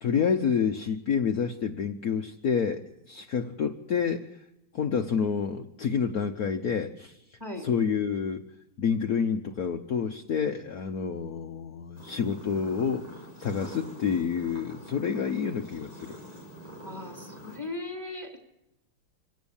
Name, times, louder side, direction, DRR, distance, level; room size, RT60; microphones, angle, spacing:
voice 1, 0.0-4.3 4.7-7.2 7.6-8.4 8.8-13.0 13.4-16.2, left 6 dB, 55° left, 4 dB, 1.3 m, -28 dB
sound 1, 12.0-17.6, equal, 80° right, 8.1 m, -45 dB
voice 2, 16.8-18.4, left 2 dB, 10° right, 3 dB, 3.4 m, -38 dB
26.0 x 17.0 x 7.2 m, 0.88 s
omnidirectional pair, 2.2 m